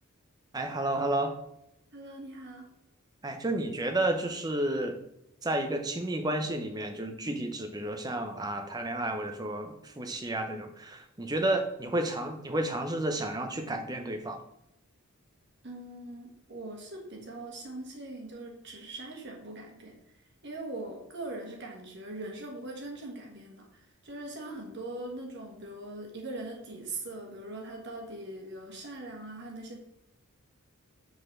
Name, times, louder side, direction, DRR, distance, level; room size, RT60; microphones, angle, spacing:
voice 1, 0.5-1.3 3.2-5.0 5.4-14.4, right 1 dB, 20° right, 5 dB, 0.7 m, -31 dB
voice 2, 1.9-2.7 15.6-20.0 20.4-29.8, right 2 dB, 50° right, 1 dB, 1.5 m, -41 dB
5.5 x 4.0 x 6.0 m, 0.83 s
head